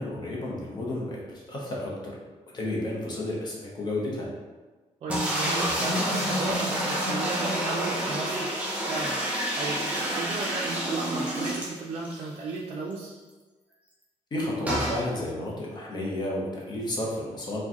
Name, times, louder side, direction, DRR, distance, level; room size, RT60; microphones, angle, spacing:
voice 1, 0.0-2.1 2.5-4.3 14.3-17.6, left 1 dB, 35° left, -4 dB, 0.7 m, -32 dB
voice 2, 5.0-8.5 8.9-13.1, right 3 dB, 50° right, -4 dB, 0.4 m, -34 dB
sound 1, 5.1-12.2 12.6-12.7 12.9-13.0 14.7-15.0, equal, 10° right, 0.7 m, -28 dB
4.7 x 2.2 x 2.9 m, 1.3 s
cardioid pair, 160°, 12 cm